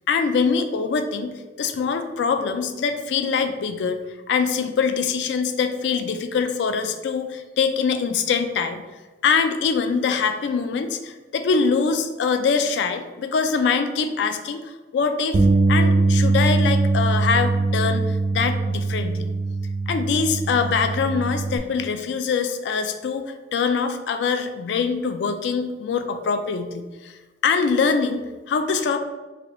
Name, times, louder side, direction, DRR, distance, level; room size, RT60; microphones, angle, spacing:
voice 1, 0.1-4.0 4.3-8.8 9.2-15.4 15.7-19.3 19.9-27.1 27.4-29.0, left 5 dB, 75° left, 8 dB, 0.3 m, -23 dB
Bass guitar, 15.3-21.6, right 3 dB, 50° right, 0.3 m, -21 dB
3.4 x 2.3 x 3.6 m, 1.2 s
head